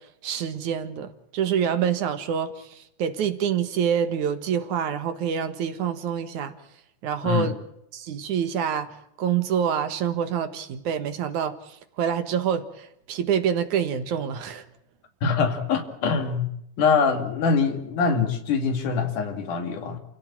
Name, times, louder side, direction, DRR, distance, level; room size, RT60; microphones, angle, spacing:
voice 1, 0.2-6.5 7.0-7.6 7.9-8.9 9.2-14.6, right 8 dB, 75° right, 3.0 m, -26 dB
voice 2, 15.2-16.5 16.8-20.0, left 5 dB, 85° left, 4.0 m, -24 dB
29.5 x 16.0 x 8.9 m
omnidirectional pair, 3.5 m